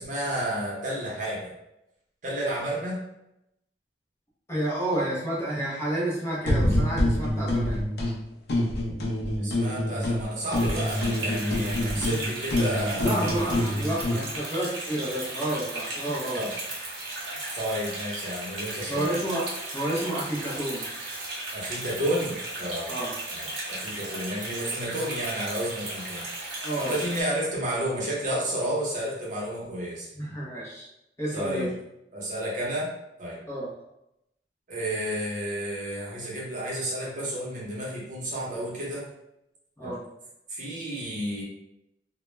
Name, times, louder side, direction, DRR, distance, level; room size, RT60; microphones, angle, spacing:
voice 1, 0.0-1.5 2.2-3.0 9.4-13.7 16.3-16.5 17.5-19.1 21.5-22.9 23.3-26.3 26.8-30.1 31.3-31.7 32.1-32.9 33.2-33.4 34.7-39.1 39.8-40.0 40.5-41.4, right 1 dB, 45° right, -4 dB, 0.7 m, -31 dB
voice 2, 4.5-7.8 13.0-16.4 18.9-20.9 22.9-23.1 26.6-27.0 30.1-30.9 31.2-31.7 33.5-33.7 39.8-40.0, right 1 dB, 15° left, -6 dB, 0.6 m, -30 dB
sound 1, 6.4-8.1 8.5-10.2 10.5-14.2, left 1 dB, 65° left, 0.5 m, -26 dB
sound 2, 10.5-27.2, right 2 dB, 85° right, 0.8 m, -36 dB
2.2 x 2.1 x 3.1 m, 0.84 s
head